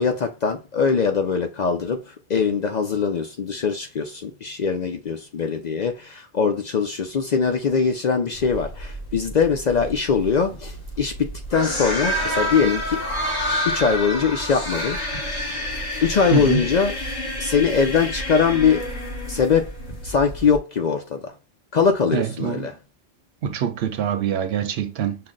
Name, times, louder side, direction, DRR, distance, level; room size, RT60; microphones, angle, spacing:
voice 1, 0.0-13.0 13.6-15.0 16.0-17.0 17.4-18.8 19.3-19.7 20.0-21.3 21.7-22.8, left 6 dB, 55° left, 0.5 m, -22 dB
sound 1, 8.3-20.6, equal, 40° left, 1.4 m, -29 dB
voice 2, 22.1-22.6 23.4-25.2, right 8 dB, 70° right, 0.8 m, -24 dB
5.7 x 2.1 x 3.7 m
omnidirectional pair, 1.1 m